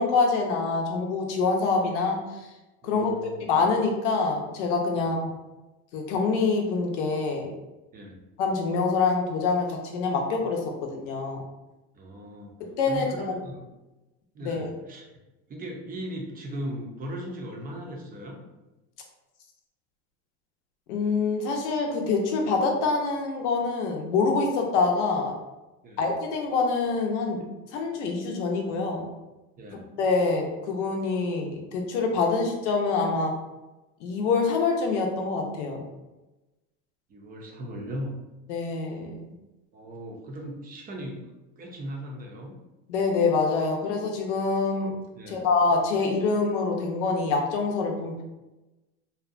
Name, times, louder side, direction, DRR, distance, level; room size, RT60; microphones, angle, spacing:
voice 1, 0.0-2.2 2.8-3.1 3.5-5.3 5.9-7.5 8.4-11.4 12.6-13.1 14.4-14.7 20.9-25.3 26.0-27.4 27.7-29.1 30.0-33.3 34.0-35.8 38.5-39.2 42.9-44.9 45.3-48.2, left 4 dB, 85° left, 2 dB, 0.7 m, -25 dB
voice 2, 2.8-3.4 4.9-5.1 7.9-8.2 11.9-12.5 12.9-13.7 14.3-15.0 15.5-18.4 25.8-26.1 29.6-29.8 37.1-38.2 39.7-41.2 41.6-42.5 45.2-45.5, equal, 25° right, 0 dB, 0.5 m, -38 dB
2.7 x 2.2 x 2.4 m, 1.1 s
supercardioid pair, 110°, 35 cm